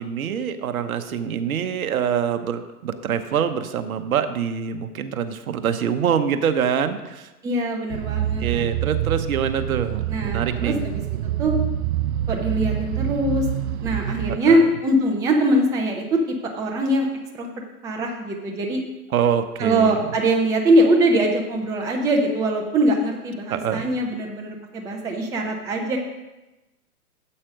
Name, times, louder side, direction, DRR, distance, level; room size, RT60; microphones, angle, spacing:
voice 1, 0.0-7.3 8.2-10.9 14.3-14.7 19.1-20.1 23.5-23.9, right 8 dB, 65° right, 10 dB, 1.0 m, -25 dB
voice 2, 7.4-8.6 10.1-10.7 11.4-11.5 12.3-13.4 13.8-17.1 17.3-17.5 17.8-18.8 19.6-26.0, right 1 dB, 5° right, 1 dB, 0.6 m, -22 dB
sound 1, 7.9-14.4, right 11 dB, 45° right, 0.7 m, -26 dB
8.6 x 7.9 x 5.1 m, 1.1 s
hypercardioid pair, 125°, 46 cm